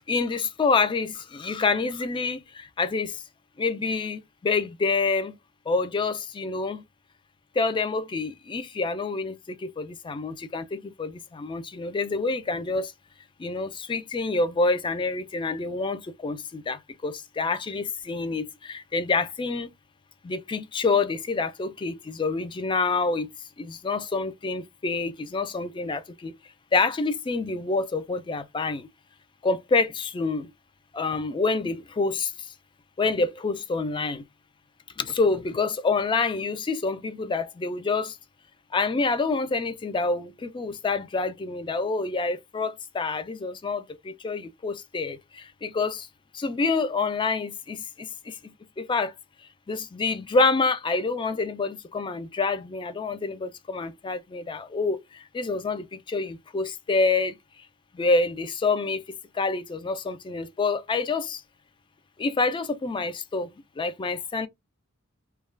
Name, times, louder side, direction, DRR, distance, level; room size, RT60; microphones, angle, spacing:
voice 1, 0.1-3.2 3.6-5.4 5.7-6.8 7.6-12.9 13.4-19.7 20.2-23.3 23.6-26.3 26.7-28.9 29.4-30.5 30.9-32.3 33.0-34.2 35.0-38.2 38.7-46.1 46.3-49.1 49.7-57.4 57.9-61.4 62.2-63.5 63.8-64.5, left 3 dB, 25° left, 0.3 m, -27 dB
2.3 x 2.2 x 3.1 m
head